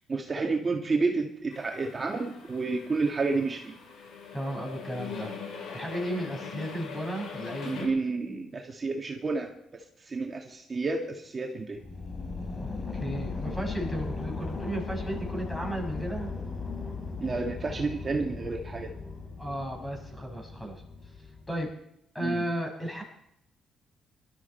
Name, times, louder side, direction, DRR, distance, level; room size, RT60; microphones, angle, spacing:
voice 1, 0.0-3.8 7.6-11.8 17.2-18.9 22.2-22.5, right 3 dB, 35° right, 1 dB, 1.9 m, -30 dB
sound 1, 1.5-7.9, left 6 dB, 75° left, 5.9 m, -42 dB
voice 2, 4.3-5.3 5.7-7.8 12.6-12.7 13.0-16.3 19.4-20.8 21.5-21.7 22.1-23.0, right 1 dB, 10° left, 1 dB, 5.8 m, -34 dB
sound 2, 11.8-21.7, left 4 dB, 35° left, 3.2 m, -37 dB
21.5 x 12.5 x 4.5 m, 0.79 s
cardioid pair, 90°, 0 cm